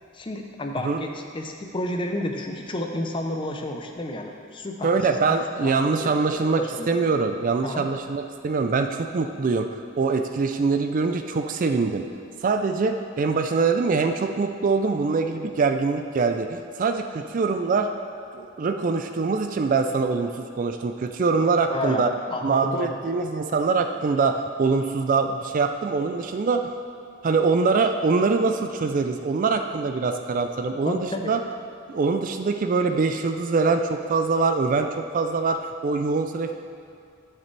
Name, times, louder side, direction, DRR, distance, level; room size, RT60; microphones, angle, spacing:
voice 1, 0.1-4.9 5.3-5.4 5.6-5.7 6.0-6.1 6.5-7.0 7.6-7.9 21.7-23.0 30.8-31.3, left 1 dB, 25° left, 3 dB, 0.6 m, -31 dB
voice 2, 4.8-12.0 12.4-17.9 18.3-22.1 22.4-26.7 27.2-31.4 31.9-36.5, right 4 dB, 40° right, 6 dB, 0.3 m, -24 dB
10.5 x 6.7 x 3.3 m, 2.5 s
head